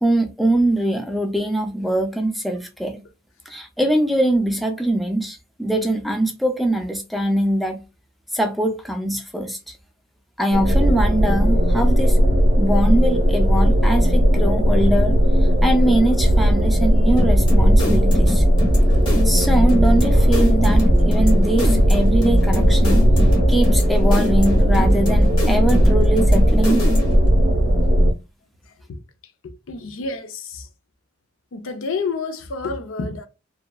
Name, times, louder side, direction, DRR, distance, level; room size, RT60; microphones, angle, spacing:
voice 1, 0.0-3.0 3.5-7.8 8.3-9.7 10.4-12.2 12.6-15.1 15.4-18.4 19.2-23.0 23.5-26.8, right 1 dB, ahead, 0.3 m, -22 dB
sound 1, 10.5-28.1, equal, 75° right, 0.6 m, -16 dB
sound 2, 17.2-27.3, equal, 25° left, 1.1 m, -23 dB
voice 2, 29.4-30.7 31.5-33.3, left 4 dB, 75° left, 0.5 m, -29 dB
2.8 x 2.3 x 2.2 m
head